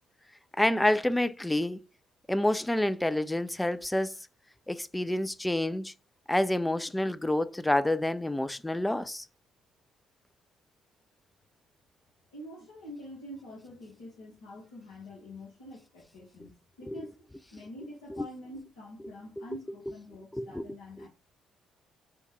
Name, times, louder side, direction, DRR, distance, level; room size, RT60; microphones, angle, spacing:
voice 1, 0.6-1.8 2.3-4.1 4.7-5.9 6.3-9.3 16.8-17.1 18.1-18.3 19.0-19.5 20.3-21.1, left 1 dB, 10° left, 0.3 m, -28 dB
voice 2, 12.3-16.5 16.8-17.1 17.5-21.1, left 1 dB, 75° left, 0.9 m, -46 dB
3.5 x 2.2 x 4.1 m
figure-of-eight pair, 45°, 0 cm